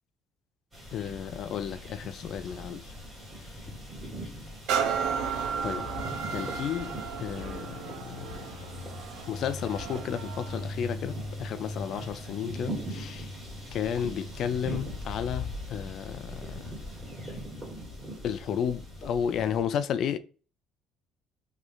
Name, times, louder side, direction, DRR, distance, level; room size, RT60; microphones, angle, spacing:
sound 1, 0.7-19.6, left 1 dB, 15° right, 2.0 m, -40 dB
voice 1, 0.9-2.9 5.6-5.9 6.3-8.6 9.3-13.3 13.7-16.8 18.2-20.2, left 8 dB, 45° left, 0.3 m, -33 dB
sound 2, 4.7-12.3 12.9-13.0, right 7 dB, 90° right, 0.6 m, -34 dB
3.1 x 3.0 x 3.8 m
cardioid pair, 165°, 0 cm